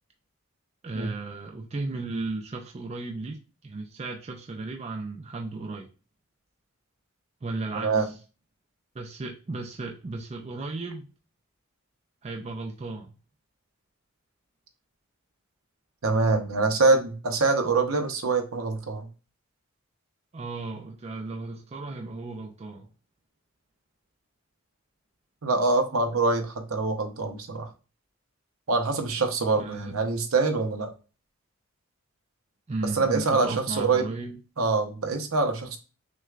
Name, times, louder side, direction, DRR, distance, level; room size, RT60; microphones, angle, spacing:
voice 1, 0.8-5.9 7.4-8.1 8.9-11.1 12.2-13.2 20.3-22.9 29.5-30.0 32.7-34.4, right 3 dB, 30° right, 0.4 m, -35 dB
voice 2, 7.7-8.1 16.0-19.1 25.4-27.7 28.7-30.9 32.8-34.1 34.6-35.8, right 3 dB, 75° right, 0.7 m, -25 dB
6.2 x 2.2 x 2.4 m
head